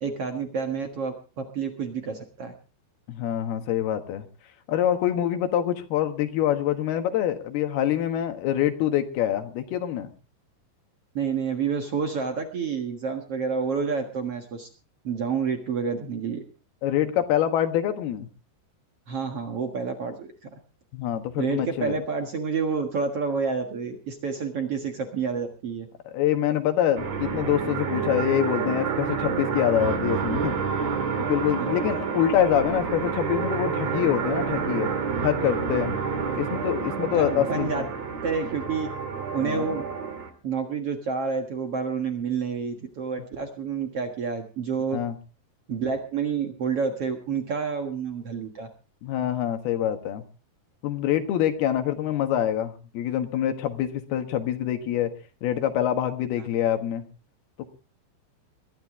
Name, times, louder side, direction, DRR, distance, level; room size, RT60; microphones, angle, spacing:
voice 1, 0.0-2.5 11.1-14.7 15.0-16.4 19.1-20.3 21.4-25.9 31.6-31.7 36.2-36.3 37.1-37.8 38.2-38.9 39.3-39.8 40.4-45.0 45.7-48.7 56.4-56.5, right 5 dB, 65° right, 4 dB, 1.4 m, -29 dB
voice 2, 3.1-4.3 4.7-10.1 16.8-18.3 20.9-22.0 26.1-30.5 31.2-34.9 35.2-36.0 36.3-37.8 39.4-39.7 44.9-45.1 49.0-50.2 50.8-55.1 55.4-57.0, left 11 dB, 65° left, 7 dB, 3.2 m, -25 dB
sound 1, 27.0-40.3, right 6 dB, 45° right, 2.9 m, -29 dB
22.0 x 12.5 x 3.6 m, 0.35 s
omnidirectional pair, 5.2 m